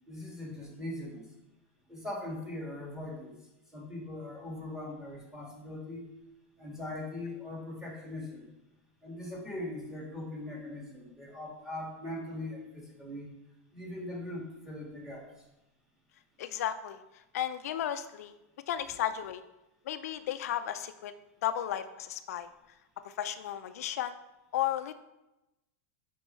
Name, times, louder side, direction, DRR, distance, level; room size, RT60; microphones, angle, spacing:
voice 1, 0.1-1.3 1.9-3.4 3.7-6.1 6.6-8.5 9.0-13.3 13.7-15.4, left 1 dB, 5° right, -2 dB, 1.8 m, -40 dB
voice 2, 16.4-17.0 17.3-18.3 18.7-19.4 19.9-21.1 21.4-22.5 23.0-24.1 24.5-24.9, left 11 dB, 75° left, 10 dB, 0.4 m, -34 dB
8.5 x 4.3 x 3.1 m, 0.96 s
supercardioid pair, 130°, 8 cm